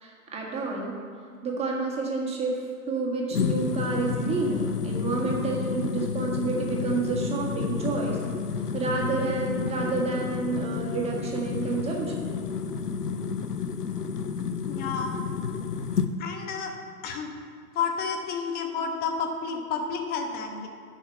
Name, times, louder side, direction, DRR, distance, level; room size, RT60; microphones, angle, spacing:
voice 1, 0.0-1.0 1.4-8.2 8.7-12.2, right 3 dB, 15° right, -2 dB, 1.7 m, -29 dB
sound 1, 3.3-16.1, left 6 dB, 80° left, 0.8 m, -30 dB
voice 2, 14.6-15.2 16.2-16.7 17.0-17.3 17.7-20.7, left 5 dB, 20° left, 4 dB, 1.0 m, -30 dB
8.2 x 6.5 x 8.3 m, 2.2 s
figure-of-eight pair, 110°, 46 cm